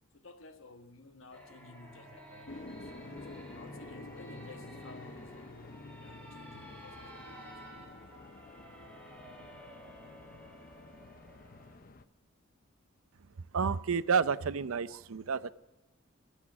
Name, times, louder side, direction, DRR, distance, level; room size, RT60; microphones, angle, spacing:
voice 1, 0.1-2.9 3.2-5.6 6.0-8.0, left 3 dB, 75° left, 1.2 m, -54 dB
sound 1, 1.3-11.8, right 1 dB, 5° left, 2.8 m, -52 dB
sound 2, 2.5-12.0, left 2 dB, 45° left, 0.7 m, -49 dB
voice 2, 13.5-15.5, right 5 dB, 85° right, 0.6 m, -30 dB
22.5 x 8.3 x 6.0 m
head